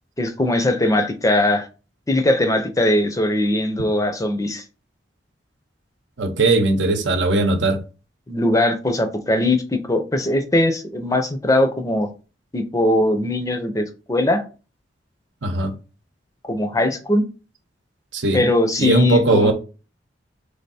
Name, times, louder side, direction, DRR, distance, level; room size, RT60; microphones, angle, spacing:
voice 1, 0.2-1.7 2.1-4.6 8.3-12.1 12.5-14.4 16.4-17.2 18.3-19.5, left 1 dB, 20° left, 0.6 m, -20 dB
voice 2, 6.2-7.8 15.4-15.7 18.1-18.5 18.8-19.5, right 2 dB, 75° right, 0.8 m, -18 dB
3.5 x 3.4 x 4.2 m
head